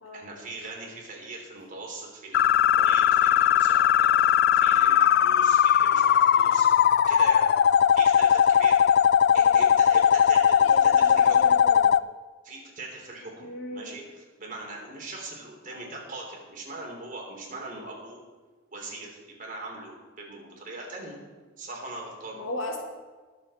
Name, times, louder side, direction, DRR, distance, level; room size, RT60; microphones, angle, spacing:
voice 1, 0.1-6.7 7.1-7.5 7.9-8.8 9.3-11.4 12.4-18.2 18.7-21.2 21.6-22.4, right 2 dB, 40° right, -1 dB, 3.3 m, -40 dB
sound 1, 2.3-12.0, left 9 dB, 55° left, 0.3 m, -19 dB
voice 2, 10.6-11.9 13.4-14.1 15.7-15.9 22.3-22.8, left 1 dB, 75° left, 1 dB, 2.3 m, -37 dB
20.0 x 7.1 x 4.3 m, 1.4 s
head